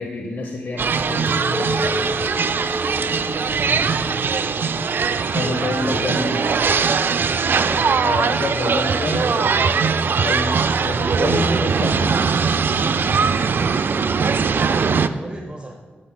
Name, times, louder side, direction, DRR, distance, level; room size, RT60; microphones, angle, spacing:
voice 1, 0.0-2.2 5.3-6.3 8.0-9.8 10.2-12.2, left 3 dB, 60° left, 2 dB, 0.9 m, -28 dB
sound 1, 0.8-15.1, right 5 dB, 60° right, 0.4 m, -20 dB
Chink clink, 1.3-5.6 5.9-6.7, equal, 25° left, 2.5 m, -32 dB
voice 2, 3.6-4.0 5.6-6.5 14.6-15.7, right 1 dB, 30° right, 1 dB, 1.0 m, -36 dB
13.5 x 9.7 x 2.2 m, 1.5 s
cardioid pair, 60°, 4 cm